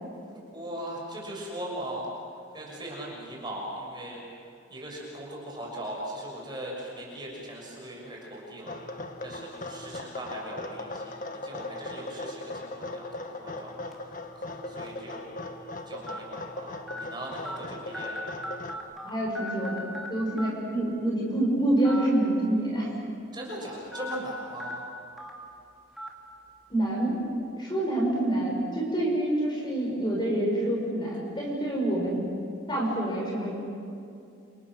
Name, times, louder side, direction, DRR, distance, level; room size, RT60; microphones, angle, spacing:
voice 1, 0.5-2.1 2.5-4.2 4.7-8.7 9.2-13.1 13.3-14.1 14.4-15.4 15.9-18.2 23.3-24.9, right 1 dB, 20° right, -3 dB, 6.9 m, -39 dB
sound 1, 8.7-18.8, left 2 dB, 40° left, 1.5 m, -39 dB
sound 2, 13.9-14.1 14.9-15.0 16.1-16.2 16.9-17.0 17.4-17.6 17.9-19.1 19.3-20.1 20.4-20.5 21.8-22.1 22.4-22.5 23.9-24.1 24.6-24.7 25.2-25.3 26.0-26.1, equal, ahead, 3.3 m, -37 dB
voice 2, 19.0-22.9 26.7-27.2 27.6-32.3 32.7-33.5, right 1 dB, 20° left, -2 dB, 6.6 m, -27 dB
29.5 x 29.0 x 6.5 m, 2.5 s
head